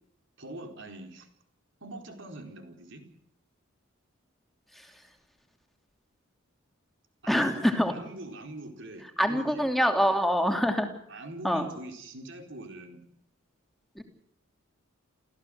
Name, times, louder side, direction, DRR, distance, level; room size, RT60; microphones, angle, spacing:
voice 1, 0.4-1.3 1.8-3.0 7.2-9.7 10.4-10.6 11.1-13.1, right 1 dB, 65° right, 4 dB, 4.5 m, -43 dB
voice 2, 7.3-7.9 9.2-10.9 11.4-11.7 13.9-14.0, equal, ahead, 4 dB, 2.8 m, -25 dB
28.5 x 15.5 x 7.9 m, 0.72 s
head